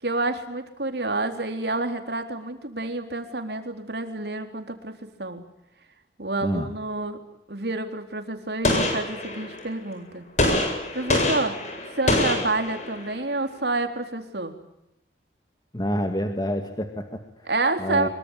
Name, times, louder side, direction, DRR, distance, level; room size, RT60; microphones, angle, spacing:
voice 1, 0.0-5.5 6.2-7.2 7.5-10.3 10.9-11.6 12.0-14.5 17.5-18.1, right 2 dB, 65° right, 6 dB, 3.9 m, -28 dB
Gunshot gunfire, 8.6-9.7 10.4-13.2, left 1 dB, 40° left, 7.9 m, -25 dB
voice 2, 15.7-17.5 17.8-18.1, equal, 20° left, 6 dB, 2.1 m, -28 dB
25.0 x 23.5 x 9.0 m, 0.84 s
head